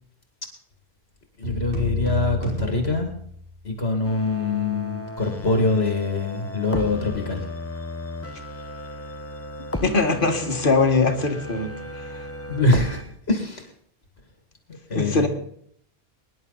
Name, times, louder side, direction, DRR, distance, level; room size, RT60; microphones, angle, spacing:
voice 1, 1.4-3.1 3.6-7.4 12.5-13.7 14.9-15.3, left 3 dB, 80° left, 3 dB, 2.4 m, -24 dB
sound 1, 1.4-3.7, left 2 dB, 55° right, 4.4 m, -30 dB
sound 2, 4.0-13.0, left 1 dB, 15° left, 1.1 m, -34 dB
voice 2, 9.8-11.7 14.9-15.3, left 3 dB, 55° left, 5 dB, 1.9 m, -21 dB
23.5 x 10.5 x 4.1 m, 0.65 s
omnidirectional pair, 1.1 m